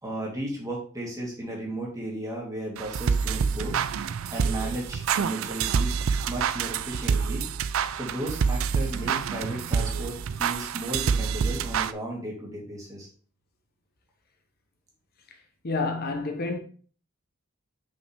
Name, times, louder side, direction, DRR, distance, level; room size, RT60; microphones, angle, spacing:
voice 1, 0.0-3.7 4.3-6.0 6.3-7.4 7.9-13.1, right 1 dB, 15° right, 2.0 m, -35 dB
sound 1, 2.8-11.9, right 6 dB, 70° right, 0.4 m, -27 dB
voice 2, 15.6-16.6, left 3 dB, 45° left, 0.8 m, -28 dB
5.6 x 5.5 x 3.4 m
head